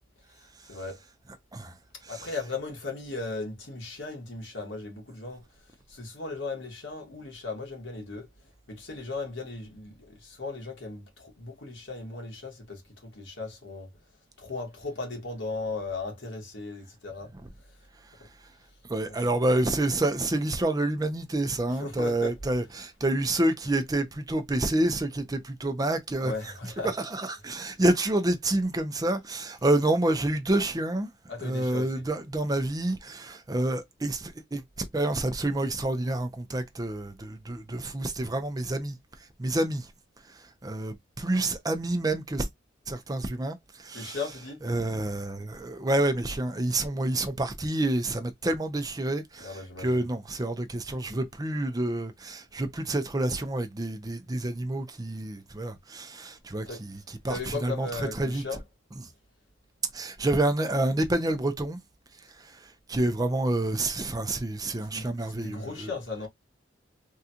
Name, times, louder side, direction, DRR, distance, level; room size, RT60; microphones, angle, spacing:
voice 1, 0.7-1.0 2.1-5.4 5.9-8.3 8.7-13.9 14.4-17.3 18.2-18.3 19.1-19.3 21.7-22.3 26.2-26.9 31.3-32.1 43.9-44.6 49.4-50.0 56.7-56.8 57.3-58.6 64.8-66.3, left 3 dB, 75° left, 1.6 m, -37 dB
voice 2, 18.9-26.3 27.1-31.1 31.4-34.6 34.9-39.0 39.4-39.9 40.6-42.5 42.9-44.2 44.6-56.9 57.2-58.4 59.9-61.8 62.4-62.5 62.9-65.9, right 1 dB, 20° right, 0.6 m, -28 dB
3.6 x 2.3 x 2.7 m
head